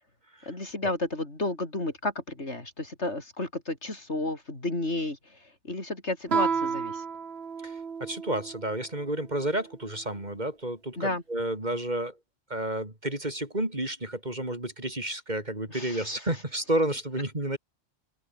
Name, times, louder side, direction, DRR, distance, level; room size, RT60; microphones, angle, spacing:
voice 1, 0.5-5.4 5.6-7.0 11.0-11.2 15.7-16.1, left 2 dB, 80° left, 5.4 m, -32 dB
Guitar, 6.3-8.7, right 6 dB, 65° right, 1.6 m, -31 dB
voice 2, 7.6-12.2 12.5-17.6, right 1 dB, 40° right, 5.0 m, -31 dB
open air
omnidirectional pair, 1.1 m